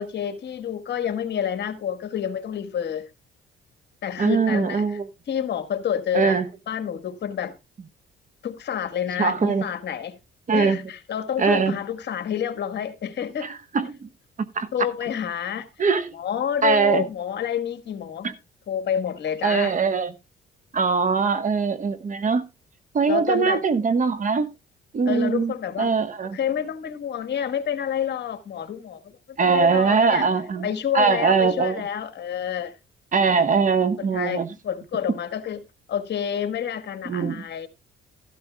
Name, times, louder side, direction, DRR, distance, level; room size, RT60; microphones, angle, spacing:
voice 1, 0.0-3.1 4.0-5.0 5.3-6.4 6.7-7.6 8.4-10.2 10.5-13.5 14.7-15.7 16.1-18.3 18.7-19.7 23.1-23.6 25.1-25.9 26.3-30.3 30.6-32.7 34.1-35.6 35.9-37.7, left 9 dB, 60° left, 1.4 m, -28 dB
voice 2, 4.2-5.1 6.1-6.4 9.2-9.6 10.5-10.8 11.4-11.7 13.4-14.1 14.5-14.7 15.8-16.1 16.6-17.0 18.2-18.3 19.4-20.1 20.7-22.4 22.9-24.5 24.9-26.4 29.4-30.7 30.9-31.8 33.1-34.5 37.0-37.4, right 5 dB, 40° right, 1.1 m, -21 dB
13.5 x 12.5 x 2.3 m
cardioid pair, 90°, 20 cm